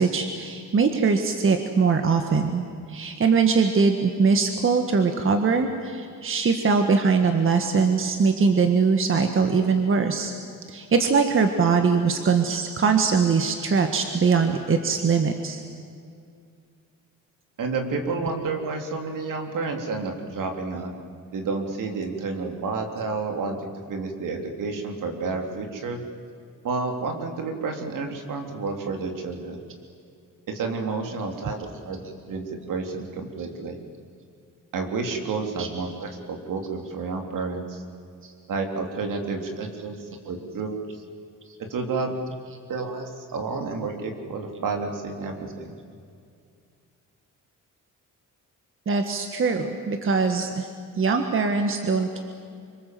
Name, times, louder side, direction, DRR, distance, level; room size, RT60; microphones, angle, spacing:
voice 1, 0.0-10.3 10.7-15.6 35.6-35.7 38.2-38.3 48.9-50.7 51.0-52.2, right 5 dB, 40° right, 5 dB, 1.7 m, -22 dB
voice 2, 17.6-20.9 21.3-26.0 26.6-29.6 30.5-32.0 32.3-33.8 34.7-37.8 38.5-40.0 40.2-40.7 41.7-42.1 42.7-45.7, right 4 dB, 70° right, 3 dB, 3.7 m, -30 dB
26.5 x 25.0 x 7.8 m, 2.4 s
cardioid pair, 140°, 33 cm